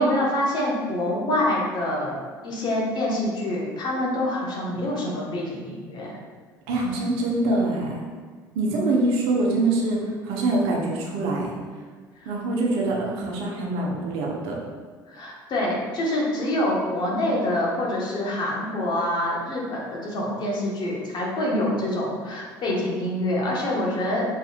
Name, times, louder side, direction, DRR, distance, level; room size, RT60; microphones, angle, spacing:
voice 1, 0.0-2.2 2.4-6.2 12.2-12.3 15.1-24.2, left 1 dB, 40° left, -4 dB, 1.3 m, -26 dB
voice 2, 6.7-8.0 8.5-11.5 12.2-14.6, right 2 dB, 55° right, -2 dB, 0.9 m, -24 dB
5.2 x 4.1 x 2.4 m, 1.5 s
figure-of-eight pair, 60°, 11 cm